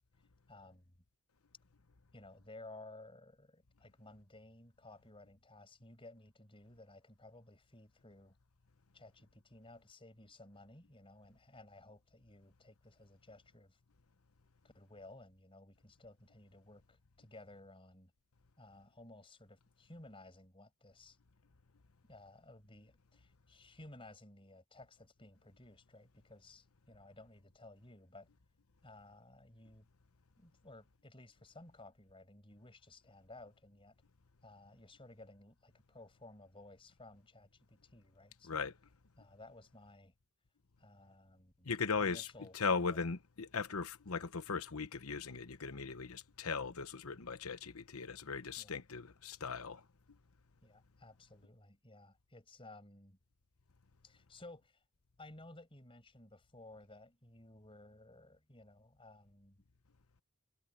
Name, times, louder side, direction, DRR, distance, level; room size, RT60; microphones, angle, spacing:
voice 1, 0.5-1.0 2.1-8.4 8.9-13.8 14.6-18.1 18.6-21.2 22.1-28.3 28.8-29.9 30.4-34.0 34.4-38.6 39.2-40.1 40.8-41.7 42.0-43.0 48.6-48.8 50.6-53.2 54.0-54.8 55.2-59.6, left 2 dB, 25° left, 5.9 m, -57 dB
voice 2, 41.6-49.9, left 5 dB, 70° left, 1.0 m, -38 dB
head